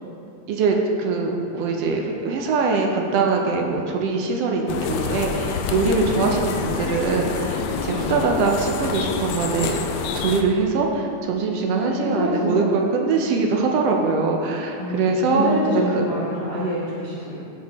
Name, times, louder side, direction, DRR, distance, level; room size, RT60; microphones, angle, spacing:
voice 1, 0.5-15.5 16.0-16.1, right 4 dB, 70° right, 1 dB, 1.6 m, -22 dB
sound 1, 4.7-10.4, left 6 dB, 85° left, 2.1 m, -27 dB
voice 2, 11.6-12.7 14.8-17.4, equal, 55° left, -9 dB, 0.6 m, -26 dB
14.0 x 4.7 x 3.5 m, 2.8 s
omnidirectional pair, 3.3 m